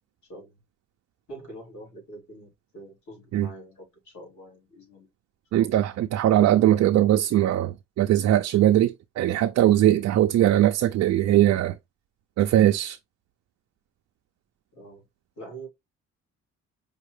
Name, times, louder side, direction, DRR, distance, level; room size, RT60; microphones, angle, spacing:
voice 1, 1.3-5.1 5.5-5.8 14.7-15.0 15.4-15.7, right 2 dB, 70° left, 3.2 m, -44 dB
voice 2, 5.5-11.8 12.4-13.0, right 12 dB, 60° right, 0.4 m, -20 dB
5.1 x 2.4 x 3.2 m
cardioid pair, 90°, 30 cm